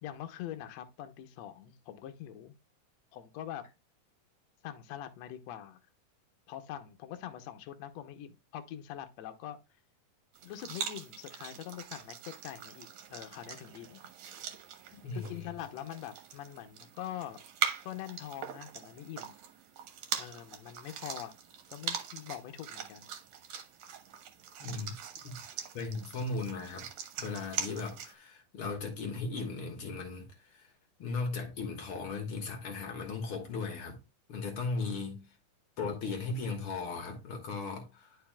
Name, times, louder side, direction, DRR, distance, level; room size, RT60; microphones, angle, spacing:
voice 1, 0.0-2.6 3.1-3.6 4.6-5.8 6.5-9.6 10.4-14.0 15.1-17.4 17.9-19.4 20.2-21.3 21.7-23.1, left 11 dB, 75° left, 1.7 m, -43 dB
sound 1, 10.3-28.1, right 8 dB, 65° right, 2.2 m, -42 dB
voice 2, 14.9-15.4 24.6-24.9 25.2-25.3 25.7-26.9 27.2-30.7 31.0-34.0 34.3-35.2 35.8-38.2, left 4 dB, 55° left, 1.8 m, -37 dB
10.5 x 4.8 x 2.3 m
omnidirectional pair, 3.6 m